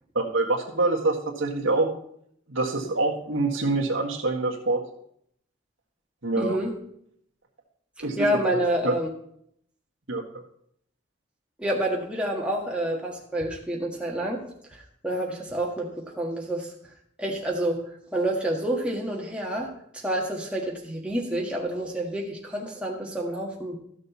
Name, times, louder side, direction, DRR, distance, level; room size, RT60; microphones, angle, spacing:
voice 1, 0.1-1.9 2.5-4.8 6.2-6.6 8.0-8.4 8.8-8.9 10.1-10.4, right 2 dB, 90° right, 1 dB, 1.7 m, -25 dB
voice 2, 6.4-6.8 8.2-9.1 11.6-14.4 15.0-16.7 17.2-17.8 18.1-23.8, right 1 dB, 5° right, -2 dB, 1.5 m, -28 dB
13.5 x 6.5 x 4.2 m, 0.69 s
head